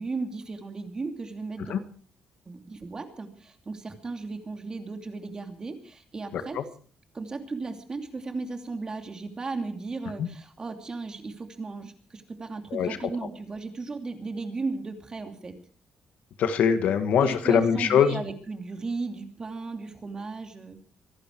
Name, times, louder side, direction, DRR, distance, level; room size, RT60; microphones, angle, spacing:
voice 1, 0.0-1.9 2.5-6.6 7.1-15.5 17.2-20.8, right 3 dB, 30° right, 6 dB, 2.8 m, -35 dB
voice 2, 16.4-18.2, left 7 dB, 75° left, 9 dB, 1.8 m, -22 dB
24.5 x 11.5 x 4.7 m, 0.43 s
cardioid pair, 120°, 3 cm